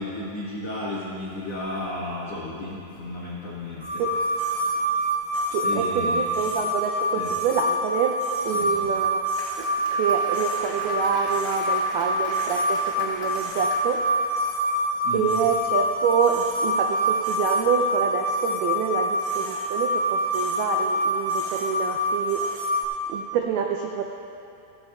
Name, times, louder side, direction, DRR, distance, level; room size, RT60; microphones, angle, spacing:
voice 1, 0.0-4.0 4.6-5.1 5.4-6.3 7.1-7.3 8.5-8.9 14.5-14.6 15.0-15.5, left 2 dB, 75° left, -6 dB, 1.5 m, -34 dB
sound 1, 3.8-22.8, equal, 25° right, 1.8 m, -26 dB
voice 2, 5.5-8.1 8.5-9.2 9.6-14.0 15.1-22.8 23.1-24.0, right 7 dB, 85° right, 3 dB, 2.2 m, -27 dB
Applause, 9.0-14.1, left 1 dB, 20° left, 2.2 m, -39 dB
16.0 x 15.5 x 2.3 m, 2.7 s
omnidirectional pair, 5.1 m